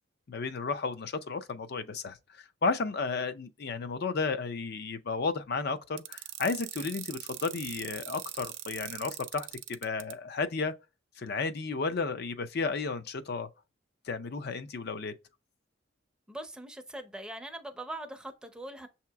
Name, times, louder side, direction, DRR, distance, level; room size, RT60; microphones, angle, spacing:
voice 1, 0.3-10.7 11.2-13.5 14.0-15.1, left 4 dB, 55° left, 0.5 m, -33 dB
sound 1, 6.0-10.1, right 14 dB, 70° right, 0.4 m, -41 dB
voice 2, 16.3-18.9, right 1 dB, 5° right, 0.5 m, -41 dB
6.6 x 2.8 x 2.3 m
head